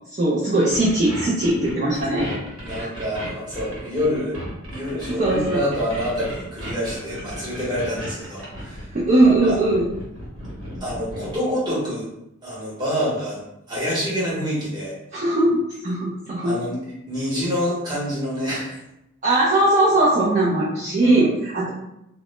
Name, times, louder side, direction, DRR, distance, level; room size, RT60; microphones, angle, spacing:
voice 1, 0.2-2.3 2.8-2.9 5.1-5.6 8.9-9.8 15.1-16.5 19.2-21.7, right 2 dB, 35° right, -7 dB, 0.4 m, -19 dB
sound 1, 0.7-11.4, equal, 80° right, 1.1 m, -35 dB
voice 2, 2.1-4.4 4.7-8.9 9.2-9.6 10.8-12.1 12.4-14.9 16.4-16.8 17.1-18.8 21.0-21.3, equal, 20° right, -7 dB, 0.8 m, -27 dB
2.0 x 2.0 x 3.0 m, 0.85 s
head